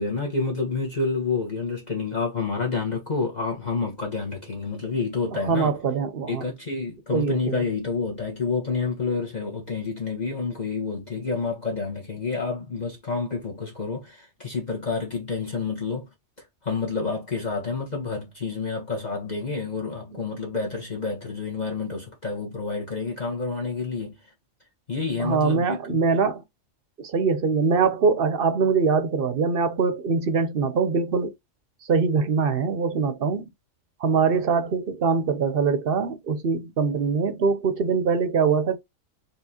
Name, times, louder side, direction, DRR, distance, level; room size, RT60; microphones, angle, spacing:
voice 1, 0.0-5.8 6.3-16.1 16.6-24.2 24.9-26.0, left 4 dB, 35° left, 1.4 m, -29 dB
voice 2, 5.4-6.4 7.1-7.6 25.2-26.4 27.0-31.3 31.9-33.5 34.0-38.8, right 5 dB, 55° right, 0.8 m, -23 dB
4.4 x 3.5 x 2.8 m
omnidirectional pair, 1.3 m